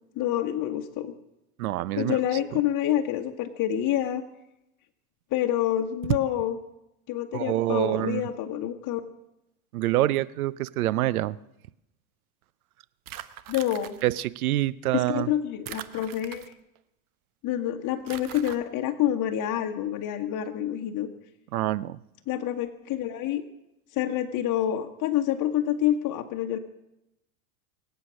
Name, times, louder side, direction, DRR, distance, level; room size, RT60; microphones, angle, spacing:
voice 1, 0.1-1.1 1.9-4.2 5.3-6.6 7.1-9.0 13.5-13.9 14.9-16.5 17.4-21.1 22.3-23.4 23.9-26.6, left 11 dB, 45° left, 1.6 m, -27 dB
voice 2, 1.6-2.2 7.3-8.2 9.7-11.4 14.0-15.3 21.5-22.0, right 15 dB, 90° right, 0.7 m, -26 dB
sound 1, 13.1-14.0 15.7-16.8 18.1-18.6, right 13 dB, 50° right, 1.2 m, -41 dB
23.5 x 8.4 x 6.4 m
hypercardioid pair, 95°, 42 cm